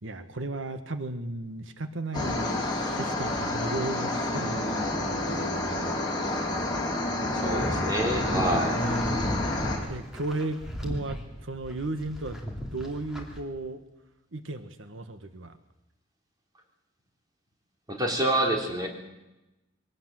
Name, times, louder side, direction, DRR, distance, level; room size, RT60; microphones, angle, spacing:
voice 1, 0.0-6.0 8.7-9.5 9.9-12.4 12.7-13.8 14.3-15.6, right 2 dB, 90° right, 10 dB, 1.4 m, -35 dB
sound 1, 2.1-9.8, left 1 dB, 20° left, 5.3 m, -29 dB
voice 2, 7.3-8.8 17.9-18.9, right 1 dB, 20° right, 1 dB, 3.7 m, -27 dB
sound 2, 8.0-13.4, equal, ahead, 3.0 m, -36 dB
23.0 x 18.0 x 7.7 m, 0.98 s
head